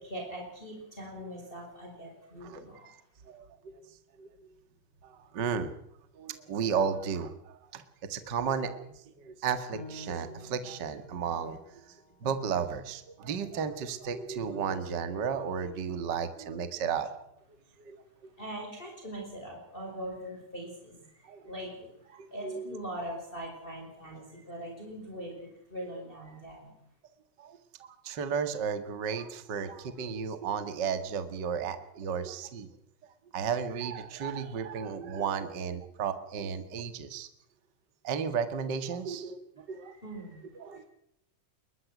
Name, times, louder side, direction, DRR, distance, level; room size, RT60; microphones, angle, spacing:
voice 1, 0.0-2.9 18.4-26.8 39.7-40.9, right 1 dB, 15° left, 1 dB, 5.8 m, -42 dB
voice 2, 3.3-3.8 4.2-4.5 5.0-5.7 6.2-7.8 8.1-11.6 12.2-17.2 17.8-18.0 21.3-21.5 22.1-22.7 27.4-27.6 28.0-32.7 33.3-37.3 38.0-39.9 40.6-40.8, right 6 dB, 40° right, 10 dB, 2.0 m, -34 dB
Piano, 9.7-14.9 15.4-15.5 16.1-16.6, left 1 dB, 70° left, 8.5 m, -52 dB
22.0 x 21.5 x 6.2 m, 0.78 s
omnidirectional pair, 3.7 m